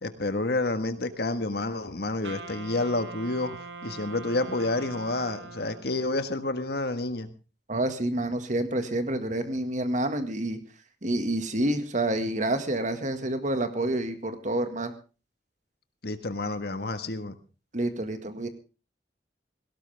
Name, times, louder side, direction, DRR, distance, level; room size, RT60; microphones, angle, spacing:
voice 1, 0.0-7.3 16.0-17.4, left 2 dB, 65° left, 9 dB, 1.6 m, -29 dB
Wind instrument woodwind instrument, 2.2-6.1, right 4 dB, 80° right, 1.9 m, -42 dB
voice 2, 7.7-10.6 11.0-14.9 17.7-18.5, right 1 dB, 45° right, 8 dB, 1.9 m, -28 dB
17.5 x 17.5 x 3.5 m, 0.34 s
head